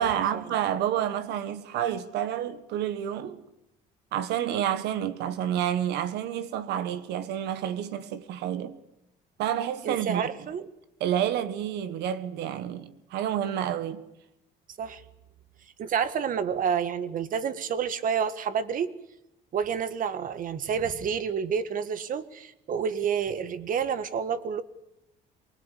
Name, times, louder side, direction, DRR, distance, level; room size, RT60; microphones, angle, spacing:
voice 1, 0.0-3.4 4.1-8.8 9.4-10.3 11.0-14.0, right 10 dB, 80° right, 1.7 m, -29 dB
voice 2, 9.8-10.7 14.8-15.0 15.8-18.9 19.5-24.6, right 7 dB, 55° right, 1.6 m, -29 dB
23.5 x 20.0 x 8.4 m
cardioid pair, 110°, 17 cm